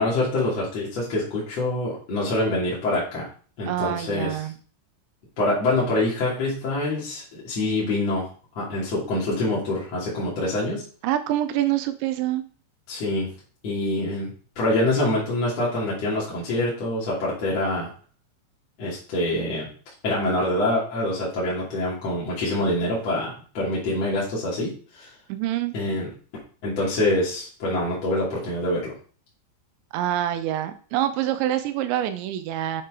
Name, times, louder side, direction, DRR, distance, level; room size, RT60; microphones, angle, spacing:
voice 1, 0.0-3.3 3.6-4.4 5.4-8.3 8.6-10.8 12.9-13.3 13.6-17.9 18.8-19.7 20.0-25.1 25.7-26.1 26.6-28.9, left 1 dB, 40° left, -6 dB, 3.5 m, -25 dB
voice 2, 3.7-4.5 11.0-12.4 25.3-25.7 29.9-32.8, right 12 dB, 90° right, 10 dB, 3.1 m, -26 dB
9.2 x 6.7 x 5.1 m, 0.41 s
omnidirectional pair, 5.2 m